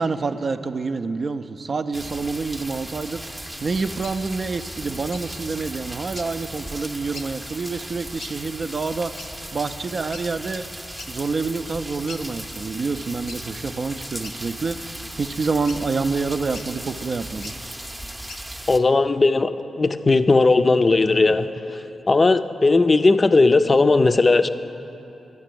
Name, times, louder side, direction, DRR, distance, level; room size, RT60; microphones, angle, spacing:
voice 1, 0.0-10.7 11.1-17.5, right 4 dB, 55° right, 10 dB, 0.4 m, -27 dB
sound 1, 1.9-18.8, right 1 dB, 15° right, 0.6 m, -37 dB
sound 2, 4.0-4.2 5.1-5.3 6.1-6.3 7.1-7.3 8.2-8.4 9.2-9.3 10.1-10.3 11.0-11.1 11.5-11.6 12.1-12.2 13.3-13.4 14.2-14.8 15.7-15.8 16.5-16.7 17.3-17.6 18.3-18.4, left 3 dB, 85° left, 0.7 m, -40 dB
voice 2, 18.7-19.5 19.8-21.5 22.1-24.5, left 3 dB, 40° left, 10 dB, 0.4 m, -17 dB
10.5 x 5.9 x 7.6 m, 3.0 s
supercardioid pair, 45°, 0 cm